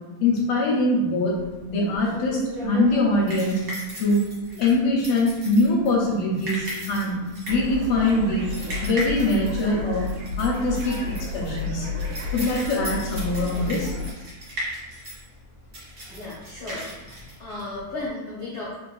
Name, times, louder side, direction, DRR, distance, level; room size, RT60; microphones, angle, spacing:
voice 1, 0.2-1.3 1.7-3.6 4.0-4.2 4.5-7.2 7.5-8.5 8.8-10.1 10.4-10.9 11.3-11.9 12.3-13.9, left 2 dB, 75° left, -3 dB, 1.7 m, -22 dB
sound 1, 1.3-18.1, right 1 dB, 45° right, 1.5 m, -37 dB
sound 2, 7.5-14.1, left 4 dB, 85° right, 2.0 m, -32 dB
voice 2, 16.0-18.7, left 2 dB, 60° left, -10 dB, 1.0 m, -35 dB
4.1 x 3.4 x 2.3 m, 1.1 s
omnidirectional pair, 3.3 m